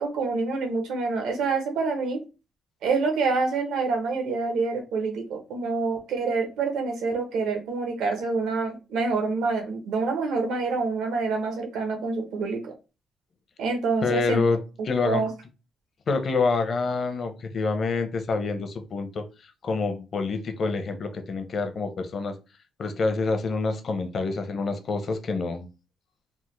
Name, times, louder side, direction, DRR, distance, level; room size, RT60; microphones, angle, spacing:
voice 1, 0.0-2.2 2.8-12.7 13.6-14.4 14.8-15.3, right 4 dB, 85° right, 0.9 m, -27 dB
voice 2, 14.0-14.6 14.8-15.2 16.1-19.2 19.6-22.3 22.8-25.7, left 4 dB, 50° left, 0.6 m, -27 dB
3.4 x 2.1 x 3.1 m
cardioid pair, 90°, 0 cm